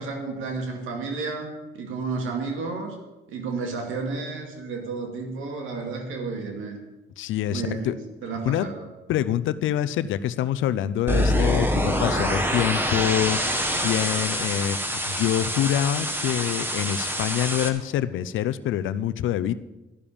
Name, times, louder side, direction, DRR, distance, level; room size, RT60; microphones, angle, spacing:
voice 1, 0.0-3.0 3.3-6.8 7.5-8.9, right 4 dB, 85° right, 2 dB, 2.3 m, -32 dB
voice 2, 7.2-7.9 8.4-8.7 9.1-13.4 13.7-14.8 15.1-19.5, left 11 dB, 80° left, 14 dB, 0.6 m, -25 dB
sound 1, 11.1-17.7, equal, 10° right, 1.7 m, -25 dB
12.5 x 7.0 x 8.8 m, 1.0 s
cardioid pair, 90°, 20 cm